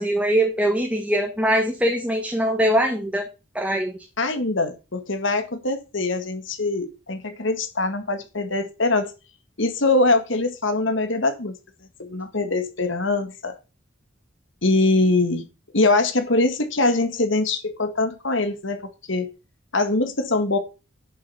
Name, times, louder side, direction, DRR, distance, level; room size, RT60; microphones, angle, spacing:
voice 1, 0.0-3.2 3.5-4.0, right 1 dB, 5° right, 1.6 m, -22 dB
voice 2, 4.2-9.1 9.6-11.5 12.1-13.6 14.6-15.4 15.7-19.3 19.7-20.6, left 2 dB, 65° left, 1.8 m, -23 dB
10.5 x 6.8 x 5.6 m
head